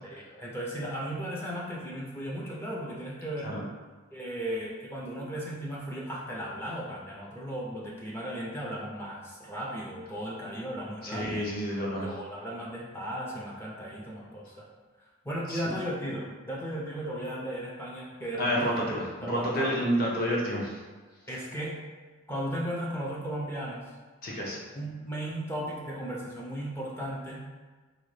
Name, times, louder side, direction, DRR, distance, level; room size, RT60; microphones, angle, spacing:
voice 1, 0.0-3.5 4.1-11.5 12.0-14.7 15.0-18.8 19.2-19.9 21.3-21.8 22.3-23.8 24.7-27.4, equal, 10° left, -5 dB, 0.4 m, -36 dB
voice 2, 11.0-12.1 15.5-15.6 18.4-20.7 24.2-24.6, equal, 45° left, -4 dB, 0.7 m, -29 dB
3.8 x 2.1 x 3.1 m, 1.3 s
head